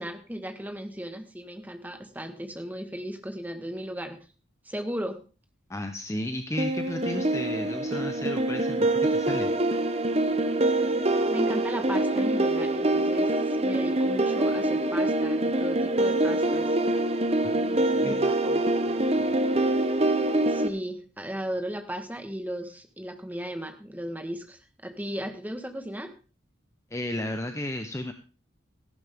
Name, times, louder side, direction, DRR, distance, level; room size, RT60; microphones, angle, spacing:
voice 1, 0.0-4.2 4.6-5.2 11.3-16.8 18.0-18.2 20.5-26.1, equal, 10° right, 6 dB, 1.5 m, -36 dB
voice 2, 5.7-9.5 17.4-18.3 18.8-19.3 26.9-28.1, left 1 dB, 15° left, 7 dB, 0.8 m, -34 dB
sound 1, 6.6-20.7, right 1 dB, 30° right, 0.9 m, -25 dB
14.5 x 11.5 x 3.7 m, 0.34 s
head